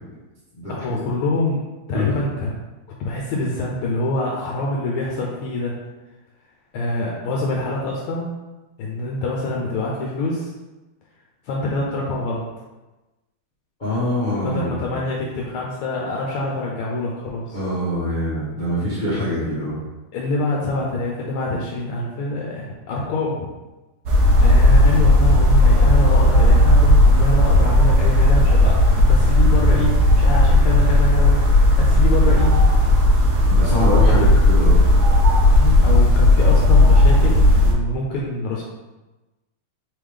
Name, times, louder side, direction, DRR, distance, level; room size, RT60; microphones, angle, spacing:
voice 1, 0.7-1.6 1.9-2.5 3.0-5.8 6.7-8.3 8.8-10.5 11.4-12.4 14.4-17.6 20.1-23.5 24.4-31.4 31.8-32.6 34.1-34.3 35.5-38.6, left 2 dB, 80° left, -3 dB, 1.5 m, -25 dB
voice 2, 13.8-14.9 17.5-19.8 33.5-34.8, equal, 35° left, -11 dB, 0.8 m, -24 dB
sound 1, 24.1-37.7, left 1 dB, 70° right, 1.0 m, -14 dB
3.9 x 3.5 x 3.2 m, 1.1 s
omnidirectional pair, 2.4 m